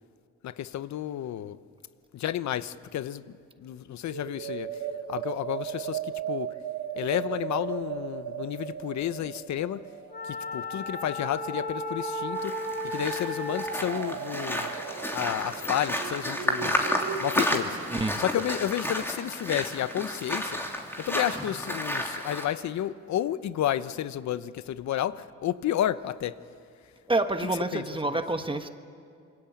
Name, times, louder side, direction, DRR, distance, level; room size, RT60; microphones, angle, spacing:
voice 1, 0.4-1.6 2.1-4.8 5.1-6.5 7.0-9.8 10.2-12.5 12.8-14.7 15.1-16.9 17.2-17.8 18.2-20.6 21.0-26.4 27.7-27.8, left 11 dB, 65° left, 0.9 m, -31 dB
sound 1, 4.1-17.3, right 8 dB, 85° right, 1.9 m, -36 dB
Wind instrument woodwind instrument, 10.1-13.8, left 4 dB, 35° left, 1.7 m, -36 dB
sound 2, 12.3-22.4, left 1 dB, 10° left, 3.1 m, -31 dB
voice 2, 17.9-18.2 27.1-28.7, right 2 dB, 15° right, 1.4 m, -28 dB
27.0 x 23.0 x 8.6 m
cardioid pair, 90°, 30 cm